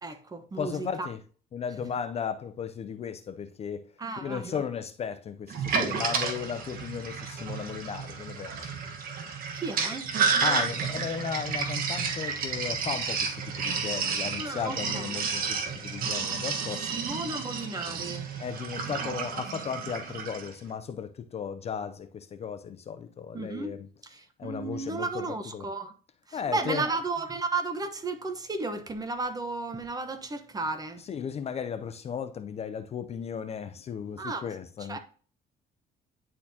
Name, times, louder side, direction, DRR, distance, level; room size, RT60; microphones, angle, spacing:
voice 1, 0.0-1.1 4.0-4.6 9.5-10.1 14.4-15.1 16.9-18.3 23.3-25.9 26.3-31.0 34.2-34.5 34.9-35.0, right 3 dB, 20° right, 1.1 m, -34 dB
voice 2, 0.6-1.2 1.5-3.8 4.2-8.5 10.4-16.9 17.3-17.4 18.4-23.9 24.4-25.3 25.5-25.7 26.3-26.8 31.1-35.0, left 7 dB, 40° left, 0.5 m, -35 dB
Sink (filling or washing), 5.5-20.5, right 5 dB, 60° right, 1.4 m, -31 dB
9.8 x 4.3 x 2.8 m
cardioid pair, 110°, 17 cm